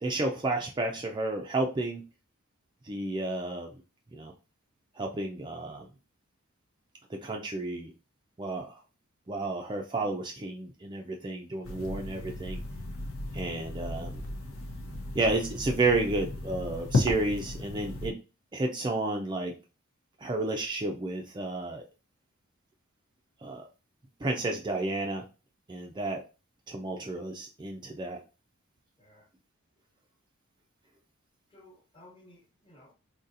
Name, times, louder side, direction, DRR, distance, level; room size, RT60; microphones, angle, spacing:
voice 1, 0.0-2.0 2.8-3.7 4.1-4.3 5.0-5.9 7.2-7.9 8.4-8.7 9.3-12.6 13.3-14.2 15.1-18.2 18.5-19.5 20.2-21.8 23.4-23.6 24.2-25.3 25.7-26.2 26.7-28.2, right 2 dB, 20° right, 0.4 m, -31 dB
sound 1, 11.6-18.1, left 2 dB, 70° left, 0.8 m, -34 dB
voice 2, 29.0-29.3 31.5-32.9, left 1 dB, 25° left, 1.1 m, -56 dB
4.0 x 2.8 x 2.6 m
head